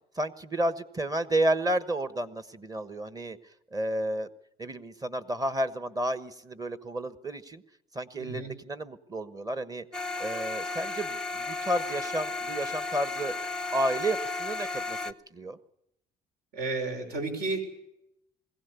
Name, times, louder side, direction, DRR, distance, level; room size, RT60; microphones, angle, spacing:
voice 1, 0.1-3.4 3.7-4.3 4.6-7.6 7.9-9.8 10.2-13.3 13.7-15.6, right 1 dB, 20° right, 13 dB, 1.2 m, -31 dB
voice 2, 8.2-8.5 16.5-17.7, right 3 dB, 70° right, 4 dB, 5.8 m, -32 dB
sound 1, 9.9-15.1, left 3 dB, 5° left, 0.8 m, -34 dB
21.5 x 16.5 x 8.2 m, 0.83 s
cardioid pair, 110°, 17 cm